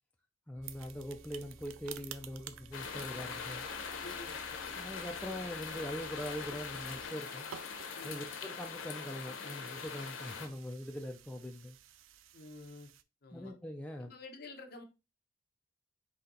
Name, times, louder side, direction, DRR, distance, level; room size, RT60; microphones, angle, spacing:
voice 1, 0.5-3.6 4.7-7.5 8.0-11.8 13.3-14.1, equal, 5° left, 0.4 m, -42 dB
sound 1, 0.5-7.1, equal, 40° right, 1.6 m, -57 dB
sound 2, 0.6-13.0, right 10 dB, 85° right, 0.3 m, -54 dB
sound 3, 2.7-10.5, left 5 dB, 90° left, 0.7 m, -42 dB
voice 2, 4.0-4.4 7.9-8.3 12.3-12.9 13.2-13.5 14.0-14.8, left 3 dB, 55° left, 0.8 m, -50 dB
4.2 x 2.8 x 3.8 m
head